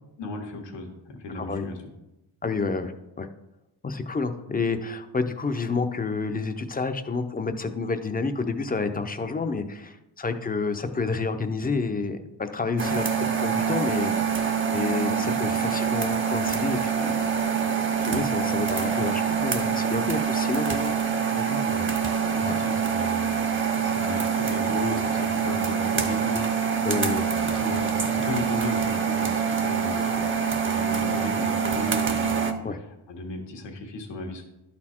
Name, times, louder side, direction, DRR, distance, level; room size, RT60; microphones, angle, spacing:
voice 1, 0.2-1.8 21.6-21.9 22.3-34.4, left 2 dB, 85° left, 3 dB, 1.6 m, -36 dB
voice 2, 1.3-1.7 2.4-2.9 3.2-3.3 3.8-14.3 14.7-17.1 18.0-20.9 21.3-21.6 22.4-22.6 26.8-27.2 32.6-32.8, left 4 dB, 20° left, 9 dB, 0.5 m, -29 dB
Pop-Corn, 12.8-32.5, right 6 dB, 30° right, 0.6 m, -25 dB
11.5 x 4.3 x 4.3 m, 0.94 s
wide cardioid pair, 140°, 42 cm